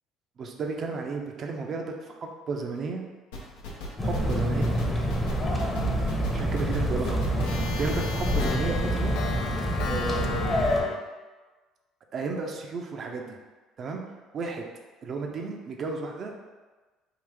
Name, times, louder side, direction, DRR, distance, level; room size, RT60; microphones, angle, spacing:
voice 1, 0.4-3.1 4.0-4.7 6.3-9.1 9.8-11.0 12.1-13.4 13.8-14.0 14.3-14.7 15.0-16.5, right 4 dB, 50° right, 2 dB, 0.6 m, -33 dB
sound 1, 3.3-8.5, left 3 dB, 85° left, 0.7 m, -38 dB
sound 2, 4.0-10.8, equal, 25° left, 0.9 m, -27 dB
Clock, 6.2-6.7 7.1-7.2 7.5-11.0, left 5 dB, 65° left, 0.3 m, -36 dB
3.8 x 2.4 x 3.4 m, 1.3 s
hypercardioid pair, 65°, 0 cm